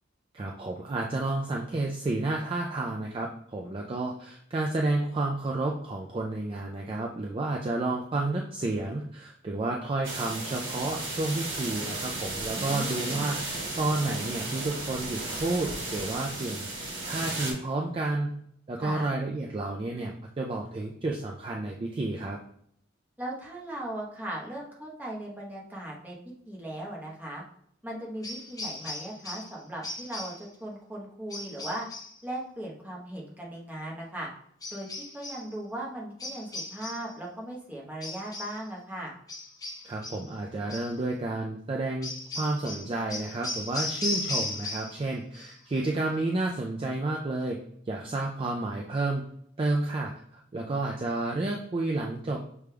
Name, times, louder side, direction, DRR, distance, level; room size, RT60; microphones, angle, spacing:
voice 1, 0.3-13.4 13.8-18.3 18.7-22.4 39.8-47.6 47.9-49.2 49.6-52.4, right 2 dB, 25° right, 0 dB, 0.3 m, -31 dB
sound 1, 10.0-17.5, right 2 dB, 70° right, 1.5 m, -34 dB
voice 2, 12.5-13.3 18.8-19.1 23.2-26.2 26.5-27.4 27.8-31.9 32.2-34.3 34.7-34.9 35.1-39.1, right 1 dB, 10° right, -3 dB, 0.9 m, -38 dB
sound 2, 28.2-29.6 29.8-30.5 31.3-32.2 34.6-35.5 36.2-37.1 38.0-38.6 39.3-40.3 40.7-41.0 42.0-45.1 45.3-45.8, left 2 dB, 20° left, 0.6 m, -37 dB
6.2 x 3.4 x 2.2 m, 0.68 s
head